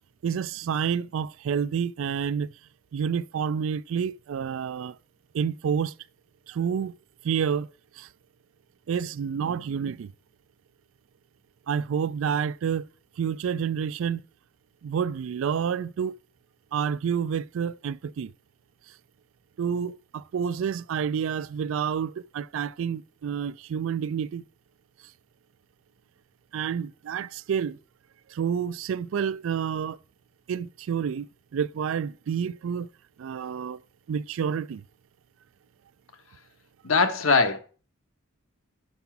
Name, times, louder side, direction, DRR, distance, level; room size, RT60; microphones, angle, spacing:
voice 1, 0.2-2.5 2.9-5.0 5.3-5.9 6.5-7.0 7.2-7.7 8.0-8.1 8.9-10.1 11.7-12.9 13.2-14.2 14.8-16.1 16.7-18.3 19.6-24.4 26.5-27.8 28.3-30.0 30.5-32.9 33.2-33.8 34.1-34.8, right 7 dB, 75° right, 0.3 m, -29 dB
voice 2, 36.8-37.6, left 4 dB, 85° left, 1.1 m, -21 dB
5.7 x 5.4 x 5.9 m
head